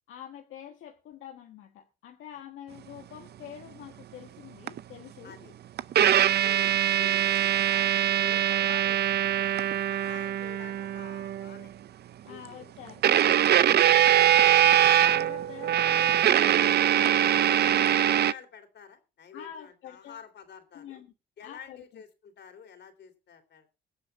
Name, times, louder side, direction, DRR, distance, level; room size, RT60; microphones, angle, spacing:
voice 1, 0.1-5.4 12.2-13.0 14.9-16.1 17.5-17.9 19.3-20.2 20.7-21.1 21.4-21.8, left 10 dB, 85° left, 3 dB, 1.4 m, -46 dB
sound 1, 4.7-4.8 5.8-11.7 13.0-18.3, right 11 dB, 55° right, 0.6 m, -22 dB
voice 2, 5.2-5.5 6.4-9.5 9.9-11.7 12.3-12.7 13.1-13.2 13.5-13.7 14.4-14.7 15.9-16.3 16.9-17.2 17.5-21.0 21.4-23.7, left 7 dB, 60° left, 7 dB, 3.3 m, -49 dB
22.0 x 7.8 x 3.6 m, 0.31 s
cardioid pair, 90°, 20 cm